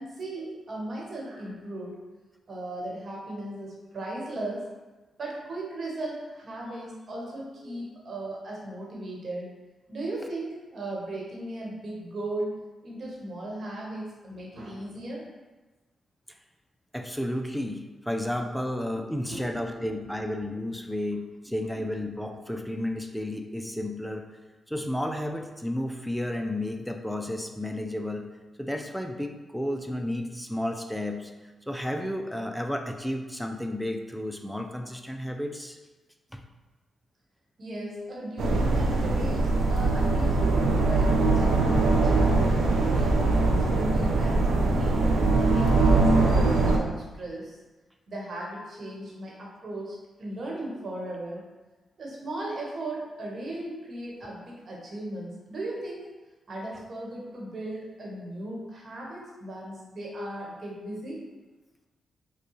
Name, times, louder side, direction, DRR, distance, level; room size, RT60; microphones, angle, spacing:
voice 1, 0.0-2.0 2.5-4.6 5.2-9.5 9.9-12.5 12.8-15.2 19.3-19.9 21.7-21.8 37.6-43.2 43.7-47.6 48.1-51.4 52.0-56.1 56.5-61.2, right 1 dB, 55° right, -3 dB, 1.2 m, -37 dB
voice 2, 16.9-24.3 24.7-28.3 28.6-31.3 31.7-35.8 36.3-36.4, left 1 dB, ahead, 4 dB, 0.4 m, -32 dB
sound 1, 38.4-46.8, right 3 dB, 85° right, 0.5 m, -22 dB
4.7 x 2.3 x 3.1 m, 1.2 s
supercardioid pair, 55°, 0 cm